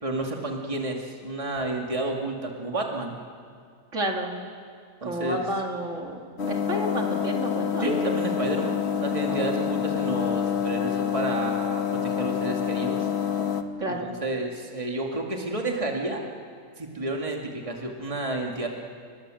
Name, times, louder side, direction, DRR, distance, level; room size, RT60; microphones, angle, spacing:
voice 1, 0.0-3.2 5.0-5.4 7.8-13.1 14.0-16.2 16.8-18.7, right 2 dB, 25° right, 1 dB, 2.3 m, -30 dB
voice 2, 3.9-4.4 5.0-7.8 9.3-9.4 13.8-14.1, right 1 dB, 65° right, 1 dB, 2.8 m, -30 dB
sound 1, 6.4-13.6, left 8 dB, 55° left, 1.5 m, -27 dB
30.0 x 21.5 x 7.8 m, 2.1 s
omnidirectional pair, 1.4 m